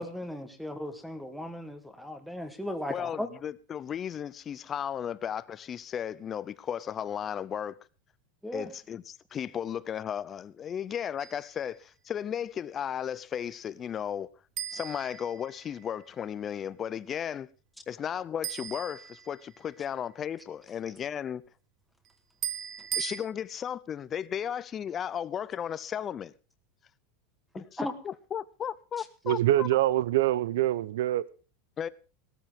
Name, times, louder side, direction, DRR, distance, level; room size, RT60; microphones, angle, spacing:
voice 1, 0.0-3.3 8.4-8.7 27.8-27.9, left 1 dB, ahead, 1.3 m, -36 dB
voice 2, 2.9-7.8 8.5-14.3 14.7-17.5 17.9-21.4 22.9-26.3 28.0-29.7 31.8-31.9, left 9 dB, 20° left, 0.6 m, -35 dB
sound 1, 11.2-11.6 14.6-15.9 18.4-19.7 22.4-23.2, right 11 dB, 25° right, 1.0 m, -37 dB
voice 3, 29.3-31.3, right 14 dB, 80° right, 0.7 m, -25 dB
18.0 x 13.5 x 3.6 m
supercardioid pair, 175°, 0 cm